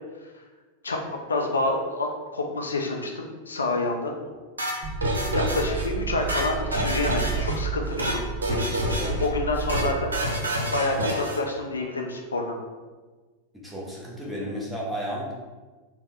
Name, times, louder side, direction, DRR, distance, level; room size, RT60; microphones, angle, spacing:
voice 1, 1.3-4.1 5.3-10.2 10.7-12.5, left 2 dB, 75° left, 1 dB, 0.4 m, -28 dB
sound 1, 4.6-5.8 6.1-7.5 7.8-8.2 8.4-9.3 9.5-9.9 10.1-11.4, equal, 75° right, 0.7 m, -27 dB
sound 2, 4.8-10.2, right 6 dB, 40° right, 0.8 m, -32 dB
voice 2, 8.7-9.2 13.5-15.3, equal, ahead, -5 dB, 0.9 m, -34 dB
3.9 x 2.1 x 3.7 m, 1.3 s
figure-of-eight pair, 90°, 0 cm